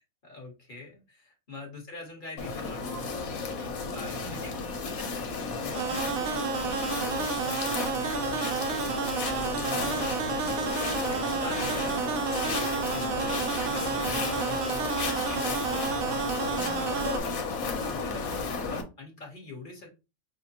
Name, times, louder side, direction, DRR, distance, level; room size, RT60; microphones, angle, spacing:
voice 1, 0.0-12.5 12.9-13.4 13.7-15.4 15.9-17.4 17.8-19.9, left 3 dB, 40° left, 0 dB, 1.3 m, -45 dB
sound 1, 2.4-18.8, left 4 dB, 90° left, 1.3 m, -33 dB
sound 2, 5.7-17.2, right 7 dB, 85° right, 1.0 m, -31 dB
5.7 x 2.1 x 2.9 m, 0.27 s
omnidirectional pair, 1.4 m